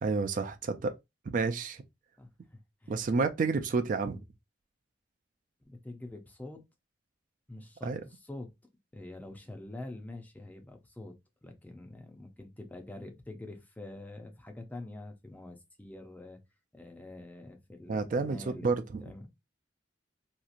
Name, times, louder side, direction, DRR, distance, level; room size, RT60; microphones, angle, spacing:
voice 1, 0.0-0.9 1.3-1.8 2.9-4.2 7.8-8.0 17.9-19.0, right 4 dB, 45° right, 0.3 m, -30 dB
voice 2, 2.2-3.0 3.7-3.8 5.6-6.6 7.5-8.5 8.9-16.4 16.7-18.7 19.0-19.3, left 2 dB, 10° left, 0.5 m, -46 dB
2.9 x 2.4 x 2.5 m
head